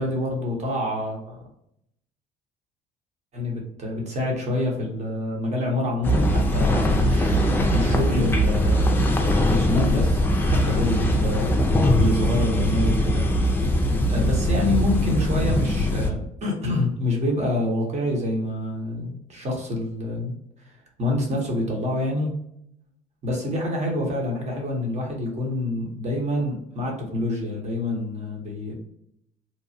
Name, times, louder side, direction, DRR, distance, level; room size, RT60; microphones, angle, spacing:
voice 1, 0.0-1.4 3.3-13.3 14.1-20.7 21.0-22.3 23.2-28.7, left 1 dB, 40° right, 0 dB, 1.1 m, -27 dB
sound 1, 6.0-16.1, equal, 10° left, 0.4 m, -21 dB
3.0 x 2.0 x 2.7 m, 0.75 s
cardioid pair, 110°, 17 cm